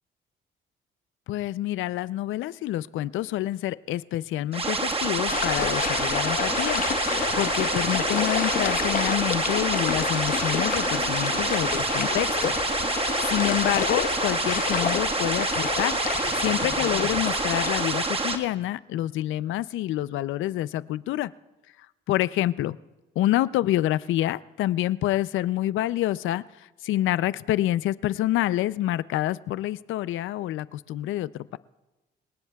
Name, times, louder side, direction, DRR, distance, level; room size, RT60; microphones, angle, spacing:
voice 1, 1.3-12.6 12.9-16.0 16.4-21.3 22.1-22.8 23.2-31.6, left 14 dB, 80° left, 17 dB, 0.5 m, -27 dB
sound 1, 4.5-18.4, right 3 dB, 30° right, 1.6 m, -27 dB
sound 2, 5.3-17.8, left 7 dB, 45° left, 0.8 m, -30 dB
28.0 x 18.0 x 2.3 m, 1.1 s
cardioid pair, 90°, 20 cm